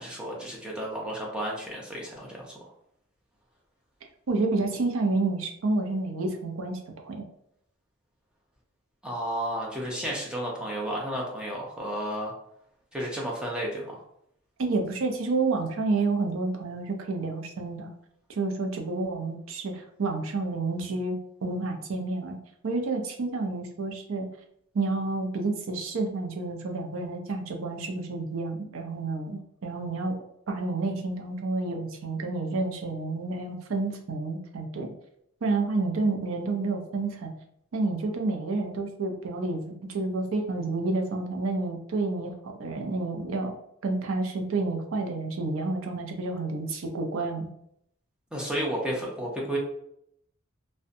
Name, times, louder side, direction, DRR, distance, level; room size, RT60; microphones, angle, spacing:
voice 1, 0.0-2.5 9.0-12.3 12.9-14.0 48.3-49.6, right 1 dB, 5° right, -3 dB, 0.5 m, -32 dB
voice 2, 4.3-6.8 7.0-7.2 14.6-17.9 18.3-22.4 22.6-24.3 24.7-30.2 30.5-34.9 35.4-37.3 37.7-43.5 43.8-47.5, right 3 dB, 75° right, 3 dB, 0.5 m, -29 dB
2.6 x 2.1 x 2.5 m, 0.73 s
head